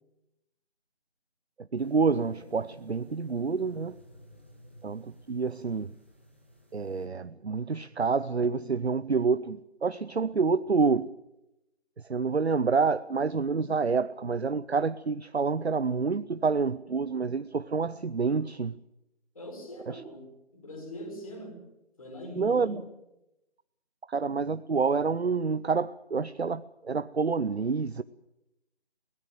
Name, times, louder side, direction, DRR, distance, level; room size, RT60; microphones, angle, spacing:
voice 1, 1.7-4.0 4.8-5.9 6.7-11.1 12.1-18.8 19.9-20.0 22.4-22.8 24.1-28.0, right 4 dB, 70° right, 0.7 m, -28 dB
sound 1, 1.8-7.1, equal, 10° left, 1.0 m, -53 dB
voice 2, 19.3-21.6 22.0-22.8, equal, 30° left, 4.7 m, -42 dB
23.0 x 17.5 x 7.6 m
figure-of-eight pair, 165°, 34 cm